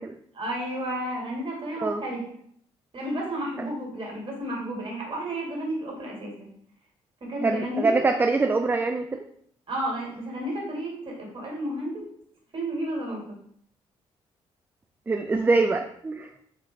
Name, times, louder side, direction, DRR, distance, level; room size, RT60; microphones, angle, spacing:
voice 1, 0.3-2.2 2.9-6.5 7.3-8.0 9.7-12.0 12.5-13.2, right 1 dB, 35° right, -2 dB, 1.7 m, -32 dB
voice 2, 7.4-9.2 15.1-16.3, right 3 dB, 15° right, 6 dB, 0.3 m, -24 dB
3.8 x 3.1 x 3.1 m, 0.66 s
figure-of-eight pair, 45°, 15 cm